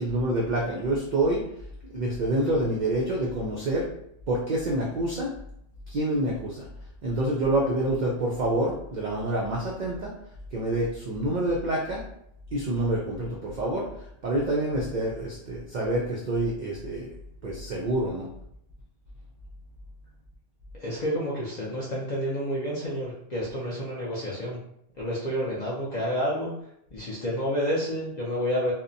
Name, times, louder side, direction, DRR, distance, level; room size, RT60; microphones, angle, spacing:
voice 1, 0.0-1.4 1.9-3.9 4.3-5.3 5.9-6.7 7.0-10.1 10.5-12.0 12.5-13.9 14.2-17.1 17.4-18.3, right 1 dB, 70° right, -3 dB, 0.4 m, -27 dB
voice 2, 20.8-24.6 25.0-26.5 26.9-28.7, equal, 55° left, -6 dB, 0.5 m, -29 dB
2.7 x 2.0 x 2.5 m, 0.73 s
omnidirectional pair, 1.3 m